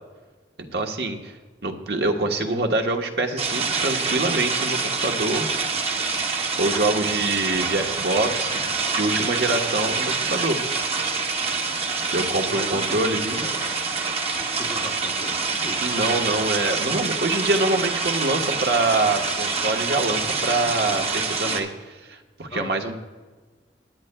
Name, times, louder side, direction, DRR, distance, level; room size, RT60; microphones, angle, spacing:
voice 1, 0.7-1.3 1.6-5.5 6.6-8.7 8.9-10.6 11.0-11.1 12.1-13.5 15.8-21.7 22.1-23.0, right 2 dB, 70° right, 3 dB, 1.2 m, -25 dB
sound 1, 3.4-21.6, right 4 dB, 35° right, 1.0 m, -26 dB
voice 2, 12.5-13.6 14.4-15.8 22.5-22.9, left 2 dB, 25° left, 5 dB, 0.8 m, -38 dB
19.5 x 9.9 x 2.2 m, 1.3 s
head